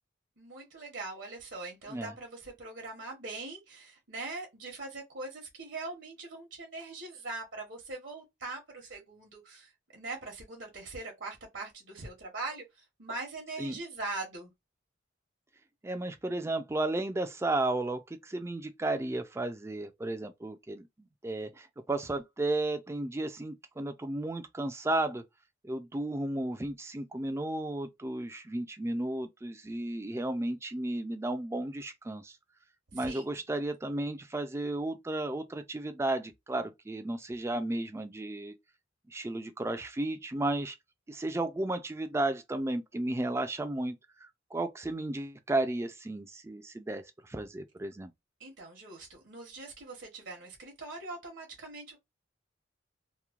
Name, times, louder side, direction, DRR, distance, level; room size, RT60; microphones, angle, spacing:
voice 1, 0.4-14.5 32.9-33.3 48.4-52.0, right 3 dB, 75° right, 1.0 m, -42 dB
voice 2, 15.8-25.2 25.6-32.4 32.9-38.5 39.1-40.8 41.1-44.0 44.5-48.1, right 2 dB, 15° right, 0.3 m, -33 dB
3.0 x 2.1 x 2.3 m
head